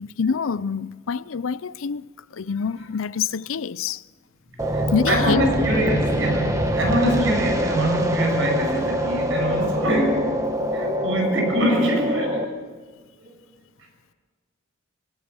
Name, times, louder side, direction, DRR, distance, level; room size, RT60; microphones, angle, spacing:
voice 1, 0.0-4.0 4.9-5.4, left 6 dB, 80° left, 0.5 m, -26 dB
sound 1, 4.6-12.4, equal, 15° right, 1.7 m, -24 dB
voice 2, 4.6-10.4 10.7-12.5 13.2-13.3, right 1 dB, 75° right, 6.5 m, -24 dB
21.5 x 17.0 x 7.0 m
head